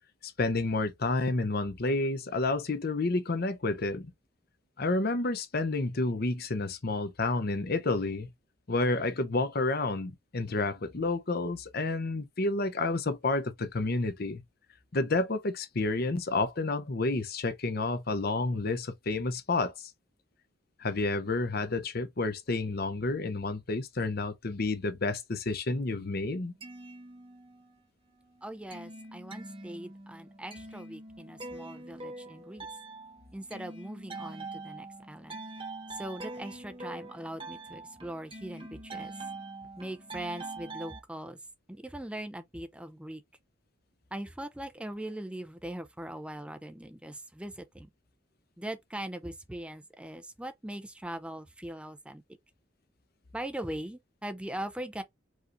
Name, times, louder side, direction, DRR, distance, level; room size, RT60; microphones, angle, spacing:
voice 1, 0.2-4.1 4.8-8.3 8.7-14.4 14.9-19.9 20.8-26.5, left 2 dB, 55° left, 0.8 m, -30 dB
sound 1, 26.4-27.8 28.2-41.0, right 2 dB, 30° right, 1.1 m, -44 dB
voice 2, 28.4-32.7 33.3-35.4 35.9-39.1 39.8-41.4 41.7-43.2 44.1-47.9 48.6-52.2 53.3-55.0, right 1 dB, 5° right, 0.4 m, -40 dB
4.7 x 4.0 x 2.6 m
head